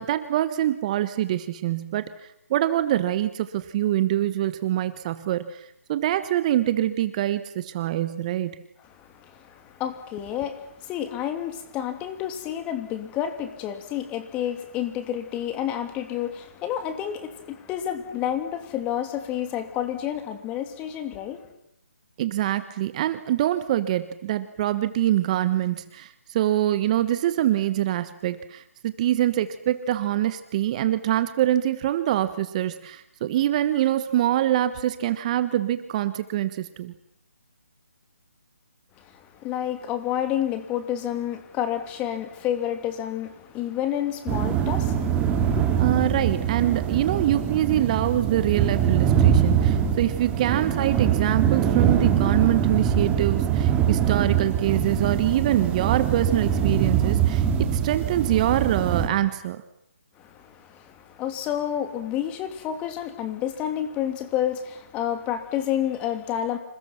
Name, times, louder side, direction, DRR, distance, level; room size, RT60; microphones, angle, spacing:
voice 1, 0.0-2.1 2.5-8.6 22.2-36.9 45.8-59.6, right 13 dB, 30° right, 1.3 m, -24 dB
voice 2, 8.8-21.4 39.0-45.9 60.2-66.6, left 10 dB, 15° left, 2.9 m, -30 dB
sound 1, 44.3-59.1, right 8 dB, 15° right, 2.9 m, -23 dB
28.5 x 28.0 x 6.0 m
figure-of-eight pair, 150°, 8 cm